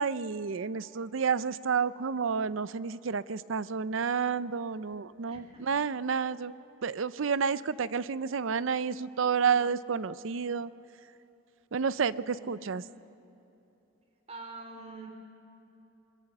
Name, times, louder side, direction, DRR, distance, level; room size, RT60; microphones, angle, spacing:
voice 1, 0.0-6.5 6.8-10.7 11.7-12.1 12.5-12.8, right 6 dB, 75° right, 16 dB, 0.5 m, -30 dB
voice 2, 5.3-5.7 9.3-9.7 12.1-13.1 14.3-15.1, right 3 dB, 30° right, 2 dB, 3.7 m, -47 dB
25.0 x 22.5 x 6.7 m, 2.9 s
head